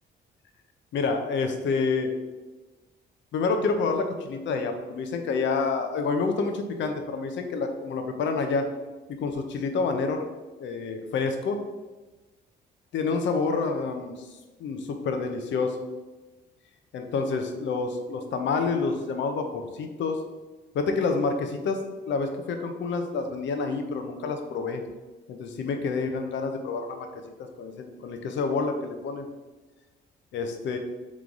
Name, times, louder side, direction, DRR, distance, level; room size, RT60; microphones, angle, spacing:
voice 1, 0.9-2.1 3.3-8.7 9.2-10.2 10.6-11.6 12.9-14.3 14.6-15.8 16.9-20.2 20.7-21.8 22.1-24.8 25.3-27.1 27.6-29.3 30.3-30.8, left 4 dB, 70° left, 5 dB, 0.6 m, -28 dB
3.8 x 3.1 x 3.6 m, 1.2 s
cardioid pair, 90°, 20 cm